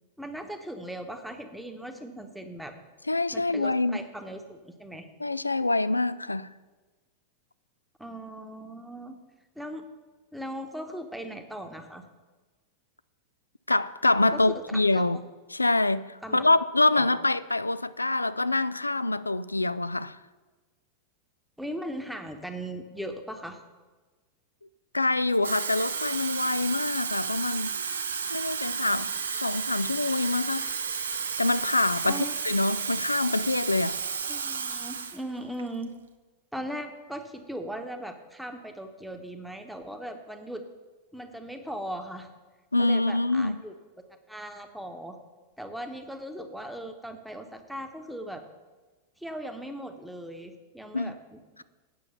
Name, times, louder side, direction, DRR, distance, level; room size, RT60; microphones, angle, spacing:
voice 1, 0.2-2.7 3.3-5.1 8.0-9.2 9.5-9.9 10.3-12.0 14.3-15.0 16.2-16.4 16.9-17.2 21.6-23.6 32.1-32.4 34.3-35.9 36.5-40.6 41.1-42.3 42.8-43.7 44.3-45.2 45.6-48.4 49.2-51.6, right 1 dB, ahead, 1.0 m, -38 dB
voice 2, 3.1-4.0 5.2-6.5 13.7-15.2 15.5-20.2 24.9-27.8 28.3-30.7 31.4-34.0 42.7-43.6 50.9-51.2, left 2 dB, 85° left, 0.3 m, -25 dB
Water tap faucet / Fill (with liquid), 25.3-35.2 35.6-35.8, right 6 dB, 70° right, 0.7 m, -32 dB
8.7 x 6.9 x 6.7 m
figure-of-eight pair, 90°, 0 cm